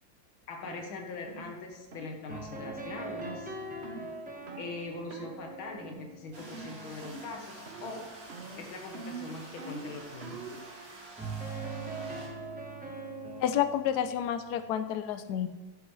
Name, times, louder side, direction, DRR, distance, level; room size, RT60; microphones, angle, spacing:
voice 1, 0.5-3.6 4.6-8.1 8.6-10.4, left 3 dB, 85° left, 2 dB, 2.0 m, -42 dB
sound 1, 0.6-0.8 1.3-1.5 1.9-2.1 2.5-2.8 3.2-3.4 3.8-4.1 4.5-4.7 5.1-5.3 5.7-6.1 6.4-6.7 7.0-7.4 7.7-8.0 8.3-10.6, right 4 dB, 45° right, 0.9 m, -44 dB
sound 2, 2.3-8.1 11.2-14.8, right 3 dB, 5° right, 0.8 m, -42 dB
sound 3, 6.3-12.3, right 2 dB, 65° right, 3.1 m, -49 dB
voice 2, 13.4-15.5, left 10 dB, 65° left, 10 dB, 1.1 m, -29 dB
12.0 x 10.0 x 3.2 m, 1.1 s
omnidirectional pair, 2.2 m